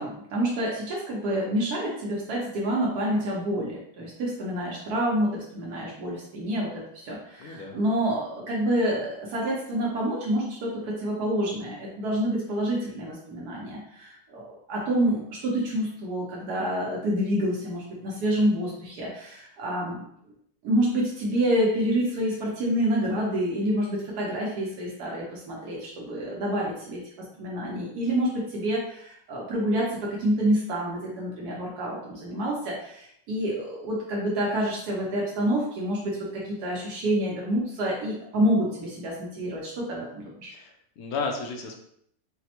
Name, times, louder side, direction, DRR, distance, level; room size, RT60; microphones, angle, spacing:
voice 1, 0.0-20.0 20.6-27.0 27.4-40.5, right 1 dB, 75° right, -3 dB, 1.2 m, -28 dB
voice 2, 7.4-7.8 40.5-41.8, left 4 dB, 70° left, 3 dB, 1.0 m, -33 dB
4.1 x 2.0 x 2.8 m, 0.71 s
omnidirectional pair, 1.7 m